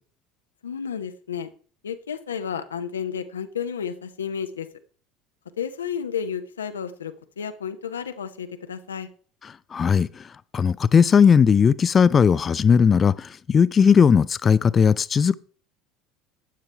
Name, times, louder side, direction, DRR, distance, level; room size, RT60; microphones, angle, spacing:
voice 1, 0.6-1.5 1.8-4.7 5.6-9.1, left 7 dB, 80° left, 0.9 m, -32 dB
voice 2, 9.7-10.1 10.5-15.4, left 6 dB, 30° left, 0.5 m, -17 dB
12.5 x 8.8 x 3.4 m
figure-of-eight pair, 65°, 0 cm